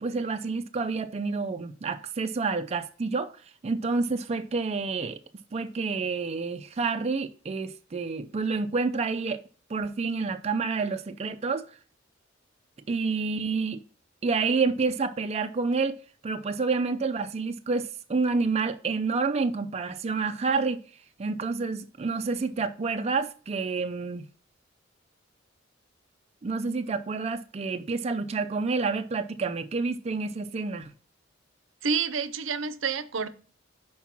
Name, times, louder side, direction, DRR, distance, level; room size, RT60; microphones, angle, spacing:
voice 1, 0.0-5.2 5.5-9.4 9.7-11.7 12.9-13.8 14.2-16.0 16.2-20.8 21.2-24.3 26.4-30.9, right 4 dB, 35° right, 0.4 m, -29 dB
voice 2, 31.8-33.3, right 5 dB, 75° right, 0.6 m, -28 dB
5.8 x 4.6 x 5.8 m
head